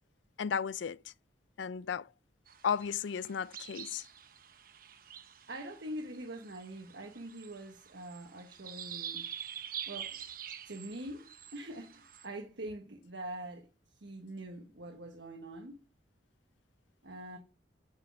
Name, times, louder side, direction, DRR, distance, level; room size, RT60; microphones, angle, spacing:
voice 1, 0.4-1.0 1.6-2.1 2.6-4.1, left 7 dB, 75° left, 0.4 m, -34 dB
sound 1, 2.5-12.3, right 9 dB, 50° right, 0.9 m, -46 dB
voice 2, 5.5-9.3 9.9-10.3 10.6-15.8 17.0-17.4, right 1 dB, 75° right, 1.4 m, -44 dB
8.1 x 7.3 x 6.0 m
head